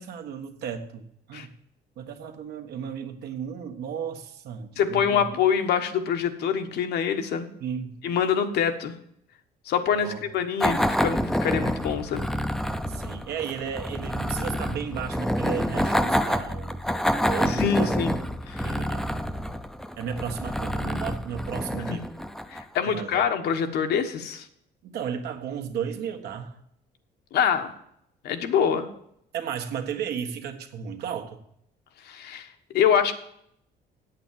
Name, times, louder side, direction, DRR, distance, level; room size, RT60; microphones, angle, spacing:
voice 1, 0.0-1.5 2.0-5.4 7.6-8.0 9.9-10.2 12.9-16.8 17.2-17.9 18.6-19.1 20.0-22.1 22.8-23.2 24.8-26.6 29.3-31.4, right 7 dB, 75° right, 5 dB, 1.5 m, -34 dB
voice 2, 4.8-7.5 8.0-8.9 9.6-12.2 17.5-18.1 18.5-18.7 21.9-22.0 22.5-24.5 27.3-27.7 28.2-28.9 32.0-32.5 32.7-33.1, left 7 dB, 75° left, 7 dB, 1.3 m, -25 dB
sound 1, 10.6-22.8, equal, ahead, 0.6 m, -28 dB
8.3 x 8.3 x 7.5 m, 0.72 s
cardioid pair, 110°, 17 cm